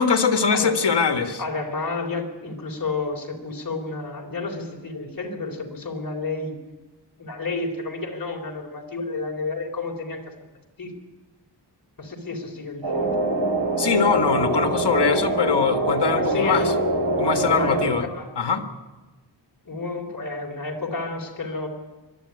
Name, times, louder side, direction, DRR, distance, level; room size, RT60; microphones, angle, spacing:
voice 1, 0.0-1.4 13.8-16.6 17.2-18.0 18.4-18.6, left 5 dB, 75° left, 6 dB, 1.8 m, -22 dB
voice 2, 1.4-6.5 7.2-10.3 10.8-10.9 12.0-13.2 14.6-14.7 16.1-16.7 17.0-18.3 19.7-21.7, left 3 dB, 50° left, 2 dB, 3.9 m, -31 dB
sound 1, 12.8-17.9, right 2 dB, 80° right, 5.1 m, -24 dB
22.5 x 12.5 x 9.6 m, 1.2 s
wide cardioid pair, 95°, 42 cm